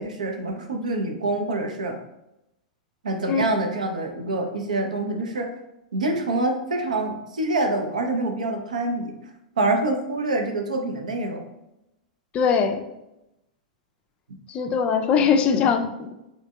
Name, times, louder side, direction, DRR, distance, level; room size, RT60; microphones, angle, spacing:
voice 1, 0.0-2.0 3.0-5.5 5.9-9.1 9.6-11.4 15.2-15.3, right 2 dB, 75° right, 4 dB, 0.5 m, -26 dB
voice 2, 12.3-12.8 14.5-16.1, left 6 dB, 30° left, 6 dB, 0.3 m, -21 dB
3.4 x 3.0 x 2.2 m, 0.89 s
figure-of-eight pair, 100°, 4 cm